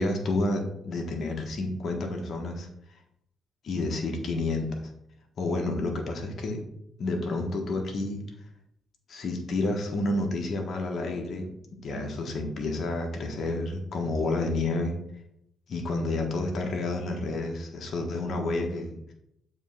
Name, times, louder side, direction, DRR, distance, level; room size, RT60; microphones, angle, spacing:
voice 1, 0.0-2.7 3.6-4.7 5.4-6.6 7.0-8.2 9.1-11.5 11.8-14.9 15.7-19.1, left 2 dB, 60° left, 3 dB, 1.5 m, -30 dB
7.2 x 3.4 x 5.6 m, 0.77 s
cardioid pair, 90°, 0 cm